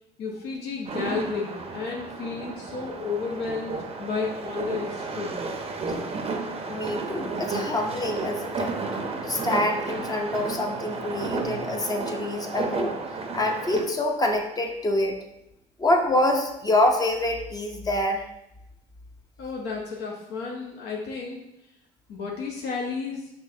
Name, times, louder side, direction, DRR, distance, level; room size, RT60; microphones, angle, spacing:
voice 1, 0.2-5.4 19.4-21.4 22.1-23.3, left 5 dB, 75° left, -1 dB, 0.7 m, -32 dB
sound 1, 0.9-13.8, right 3 dB, 35° right, 0.6 m, -32 dB
voice 2, 6.7-8.7 9.2-13.0 13.3-15.2 15.8-18.2, left 1 dB, 20° left, 3 dB, 0.6 m, -26 dB
6.1 x 2.7 x 2.7 m, 0.86 s
cardioid pair, 110°, 17 cm